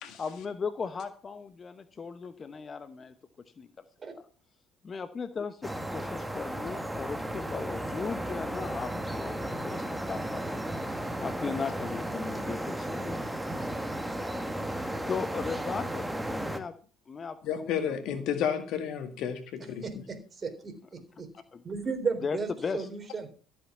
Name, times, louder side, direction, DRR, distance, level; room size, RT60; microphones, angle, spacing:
voice 1, 0.2-3.1 3.6-3.9 4.1-4.2 4.8-10.4 10.9-13.3 14.6-16.7 17.1-18.0 21.1-21.2 21.5-21.6 22.2-22.9, left 5 dB, 35° left, 12 dB, 0.9 m, -37 dB
sound 1, 5.6-16.6, right 1 dB, 5° right, 1.8 m, -34 dB
voice 2, 17.4-19.8, left 8 dB, 60° left, 8 dB, 2.0 m, -31 dB
voice 3, 19.8-21.3 21.6-22.5 22.7-23.5, right 5 dB, 35° right, 7 dB, 3.9 m, -35 dB
14.0 x 7.3 x 6.1 m, 0.38 s
hypercardioid pair, 60°, 0 cm